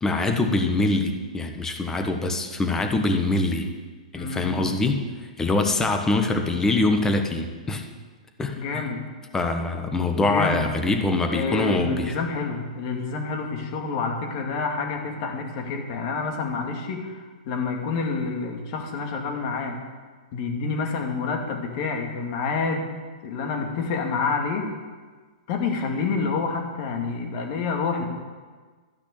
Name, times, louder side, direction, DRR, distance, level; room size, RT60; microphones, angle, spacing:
voice 1, 0.0-3.7 4.1-5.0 5.4-7.9 8.4-8.9 9.3-12.1, left 2 dB, 10° left, 5 dB, 1.3 m, -24 dB
voice 2, 4.1-4.7 8.6-9.0 10.2-10.7 11.3-19.8 20.3-22.8 23.2-24.6 25.5-28.0, left 4 dB, 50° left, 3 dB, 2.3 m, -28 dB
12.5 x 6.0 x 8.7 m, 1.4 s
hypercardioid pair, 130°, 4 cm